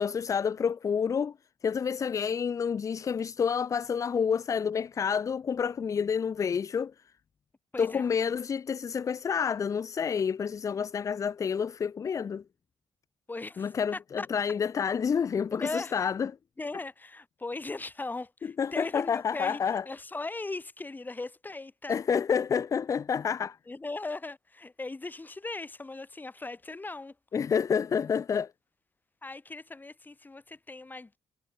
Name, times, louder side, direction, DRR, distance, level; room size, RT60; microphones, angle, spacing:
voice 1, 0.0-1.3 1.6-6.9 7.8-12.4 13.6-16.3 18.6-19.8 21.9-23.6 27.3-28.5, left 6 dB, 35° left, 0.4 m, -29 dB
voice 2, 7.7-8.1 13.3-14.3 15.5-16.1 16.6-22.0 23.7-27.2 29.2-31.2, left 3 dB, 20° left, 2.8 m, -38 dB
cardioid pair, 90°, 10 cm